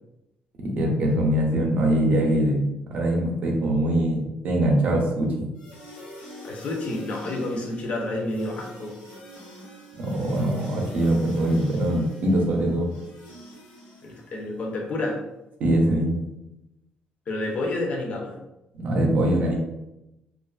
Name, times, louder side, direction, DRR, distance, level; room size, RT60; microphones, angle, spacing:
voice 1, 0.6-5.5 10.0-12.9 15.6-16.3 18.7-19.5, right 1 dB, 55° right, 0 dB, 0.6 m, -23 dB
sound 1, 5.5-14.7, left 1 dB, 80° left, 0.9 m, -44 dB
voice 2, 6.4-8.9 14.0-15.2 17.3-18.3, left 2 dB, 45° left, 0 dB, 0.5 m, -29 dB
2.4 x 2.3 x 2.3 m, 0.93 s
cardioid pair, 150°, 3 cm